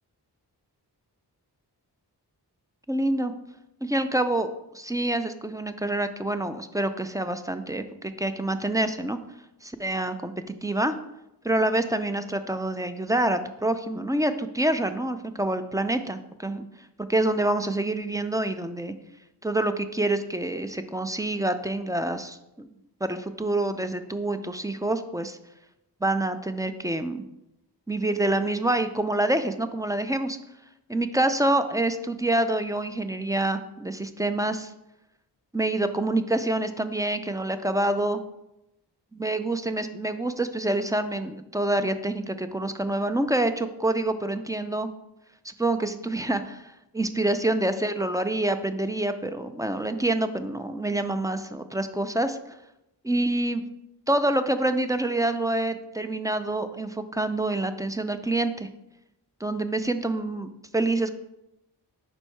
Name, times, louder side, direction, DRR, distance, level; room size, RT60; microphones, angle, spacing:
voice 1, 2.9-3.3 3.8-9.2 9.6-10.9 11.4-16.7 17.0-18.9 19.4-22.7 23.0-25.4 26.0-27.2 27.9-30.4 30.9-34.7 35.5-38.2 39.1-44.9 45.5-52.4 53.0-53.6 54.1-58.7 59.4-61.1, right 1 dB, 10° right, 9 dB, 0.3 m, -27 dB
5.3 x 4.5 x 4.5 m, 0.89 s
wide cardioid pair, 80°, 41 cm